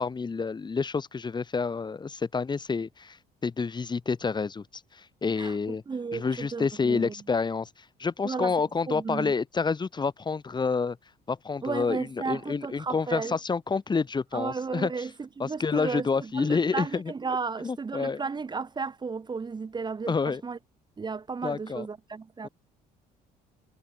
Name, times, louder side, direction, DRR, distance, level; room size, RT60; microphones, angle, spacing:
voice 1, 0.0-3.2 3.4-5.8 6.1-7.7 8.0-11.0 11.3-14.9 15.4-17.1 17.6-18.2 20.1-20.4 21.4-21.9 22.4-22.5, left 4 dB, 25° left, 2.4 m, -28 dB
voice 2, 5.4-7.1 8.2-8.5 8.9-9.3 11.6-13.4 14.3-20.6 21.0-22.5, right 4 dB, 25° right, 1.8 m, -34 dB
cardioid pair, 110°, 17 cm